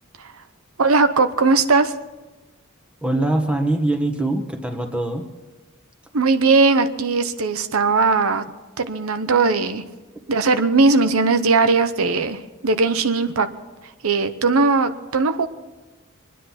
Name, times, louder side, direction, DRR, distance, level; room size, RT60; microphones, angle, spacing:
voice 1, 0.8-1.9 6.1-8.4 8.8-9.8 10.3-13.5 14.0-15.5, right 3 dB, 75° right, 9 dB, 0.9 m, -19 dB
voice 2, 3.0-5.2, right 1 dB, 5° right, 4 dB, 1.5 m, -22 dB
24.5 x 10.0 x 5.8 m, 1.2 s
head